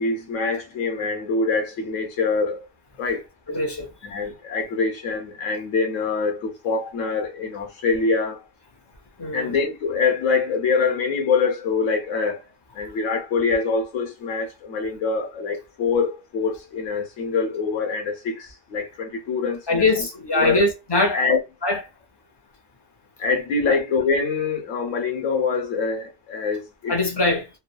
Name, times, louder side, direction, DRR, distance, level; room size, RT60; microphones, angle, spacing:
voice 1, 0.0-2.7 3.0-3.2 4.0-8.4 9.3-12.4 12.7-19.8 20.3-20.6 21.1-21.4 23.2-27.0, left 4 dB, 90° left, 1.1 m, -24 dB
voice 2, 3.5-3.9 9.2-9.6 19.7-21.2 21.6-21.8 23.6-23.8 26.9-27.5, left 2 dB, 35° left, 0.4 m, -22 dB
3.0 x 2.1 x 2.2 m
omnidirectional pair, 1.3 m